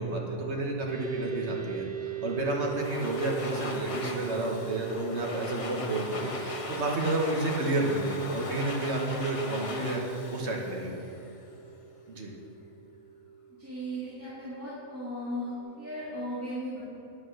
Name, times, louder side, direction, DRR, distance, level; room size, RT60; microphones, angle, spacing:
voice 1, 0.0-10.9 12.1-12.3, right 2 dB, 65° right, -1 dB, 1.4 m, -30 dB
sound 1, 0.9-15.6, right 10 dB, 80° right, 1.8 m, -42 dB
Domestic sounds home sounds, 2.5-11.4, left 2 dB, 35° left, 0.7 m, -40 dB
voice 2, 13.6-16.9, equal, 10° right, -12 dB, 2.2 m, -36 dB
10.5 x 5.0 x 6.4 m, 2.9 s
omnidirectional pair, 1.2 m